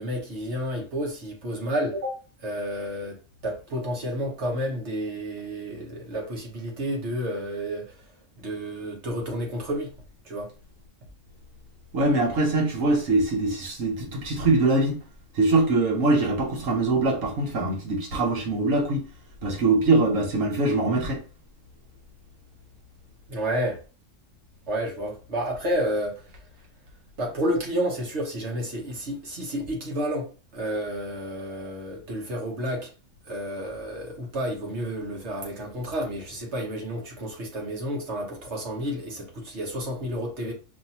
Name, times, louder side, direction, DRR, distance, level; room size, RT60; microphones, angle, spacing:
voice 1, 0.0-2.1 2.4-8.1 8.4-9.9 10.2-10.5 23.3-23.8 24.7-26.2 27.2-32.9 33.2-40.5, equal, 60° right, 1.5 m, -30 dB
voice 2, 11.9-15.0 15.3-19.1 19.4-21.2, right 2 dB, 80° right, 1.4 m, -23 dB
5.2 x 2.6 x 2.8 m
omnidirectional pair, 1.3 m